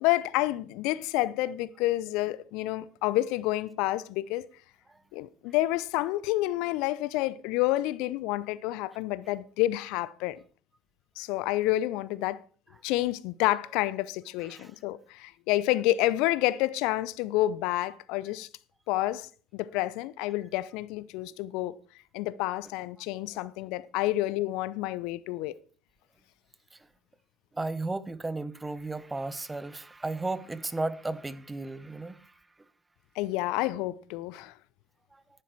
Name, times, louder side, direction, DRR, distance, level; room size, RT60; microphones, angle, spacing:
voice 1, 0.0-4.4 5.1-10.4 11.2-12.4 12.8-18.5 18.9-21.8 22.1-25.5 33.2-34.5, left 16 dB, 65° left, 0.6 m, -29 dB
voice 2, 27.5-32.3 35.1-35.2, right 2 dB, 15° right, 1.0 m, -34 dB
11.0 x 10.0 x 4.6 m
hypercardioid pair, 60°, 0 cm